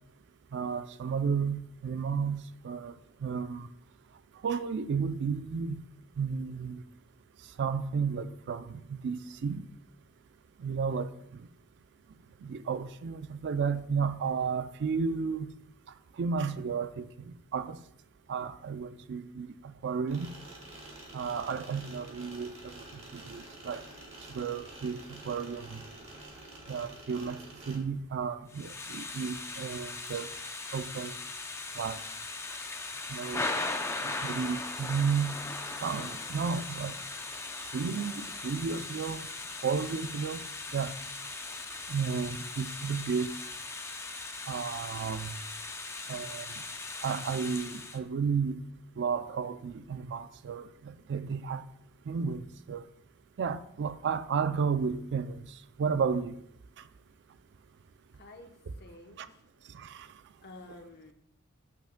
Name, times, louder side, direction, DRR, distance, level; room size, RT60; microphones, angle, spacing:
voice 1, 0.5-2.9 3.2-3.7 4.4-5.8 6.2-6.8 7.6-9.7 10.6-11.1 12.4-15.5 16.2-17.8 18.3-20.3 21.1-22.8 23.1-23.8 24.3-25.8 26.7-27.4 27.7-30.3 30.7-31.1 31.8-32.0 33.1-33.5 34.0-35.4 35.8-37.0 37.7-39.3 39.6-40.4 40.7-40.9 41.9-43.4 44.5-45.3 46.1-46.5 47.0-48.6 49.0-51.7 52.1-52.8 53.4-55.4 55.8-56.4 59.2-59.3 59.7-60.1, right 6 dB, 55° right, 0.4 m, -33 dB
sound 1, 20.1-27.8, right 1 dB, 30° right, 1.5 m, -48 dB
Thunder / Rain, 28.5-48.0, left 3 dB, 15° left, 0.5 m, -39 dB
voice 2, 58.1-58.5 58.8-59.4 60.4-61.1, left 2 dB, 50° left, 0.9 m, -50 dB
8.8 x 8.0 x 2.2 m
head